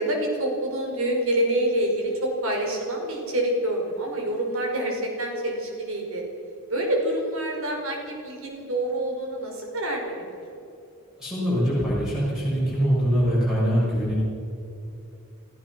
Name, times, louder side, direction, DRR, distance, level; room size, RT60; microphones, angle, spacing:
voice 1, 0.0-6.2 6.7-10.2 10.5-10.6, right 1 dB, 65° right, 1 dB, 5.0 m, -27 dB
voice 2, 11.2-14.2, equal, ahead, -9 dB, 6.6 m, -23 dB
28.0 x 15.0 x 6.2 m, 2.8 s
head